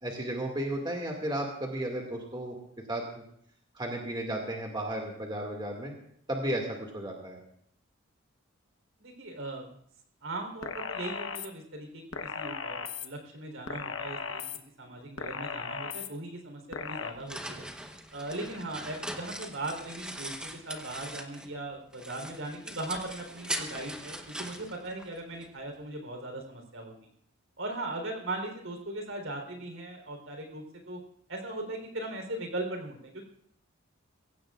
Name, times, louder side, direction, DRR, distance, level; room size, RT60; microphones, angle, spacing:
voice 1, 0.0-2.6 2.9-3.2 3.7-5.9 6.3-7.4, right 1 dB, 20° right, 0 dB, 2.1 m, -34 dB
voice 2, 9.0-9.7 10.2-12.0 12.3-14.4 14.8-17.7 18.1-27.0 27.6-31.0 31.3-33.2, right 2 dB, 70° right, 3 dB, 3.8 m, -39 dB
sound 1, 10.6-11.5 12.1-13.1 13.7-14.6 15.2-16.1 16.7-17.1, left 5 dB, 65° left, 1.1 m, -36 dB
sound 2, 16.9-21.6 21.9-25.5, right 1 dB, 5° right, 1.0 m, -41 dB
23.0 x 16.5 x 2.5 m, 0.67 s
head